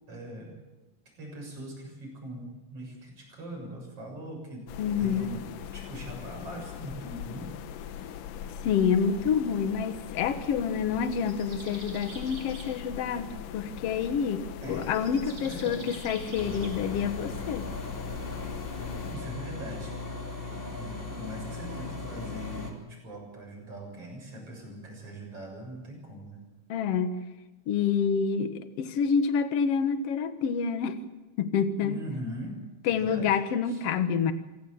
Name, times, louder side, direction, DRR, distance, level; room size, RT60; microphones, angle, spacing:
voice 1, 0.1-0.5 1.2-4.7 5.0-5.4 5.7-7.5 8.4-8.6 12.0-12.2 14.6-14.9 15.3-15.9 19.0-19.9 20.5-26.4 31.8-32.6 32.9-33.3 33.7-33.8, equal, 45° right, 1 dB, 7.9 m, -41 dB
sound 1, 4.7-19.2, left 9 dB, 80° left, 2.6 m, -41 dB
voice 2, 4.8-5.3 8.6-14.4 14.7-17.7 26.7-27.2 27.7-31.0 31.4-32.0 32.8-34.3, left 6 dB, 55° left, 10 dB, 2.0 m, -28 dB
sound 2, 10.3-12.8 14.7-16.7, right 2 dB, 60° right, 7.5 m, -47 dB
sound 3, 16.4-22.7, left 3 dB, 15° left, 2.9 m, -37 dB
26.5 x 17.0 x 7.3 m, 1.1 s
omnidirectional pair, 3.8 m